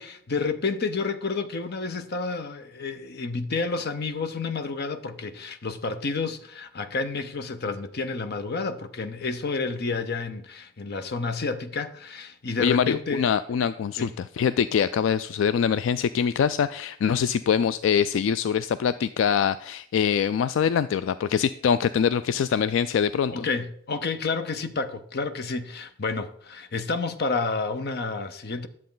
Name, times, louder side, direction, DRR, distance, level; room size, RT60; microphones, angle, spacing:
voice 1, 0.0-13.3 14.0-14.1 23.3-28.7, left 4 dB, 55° left, 0.7 m, -30 dB
voice 2, 12.6-23.5, left 7 dB, 75° left, 0.3 m, -24 dB
10.5 x 7.5 x 3.9 m
head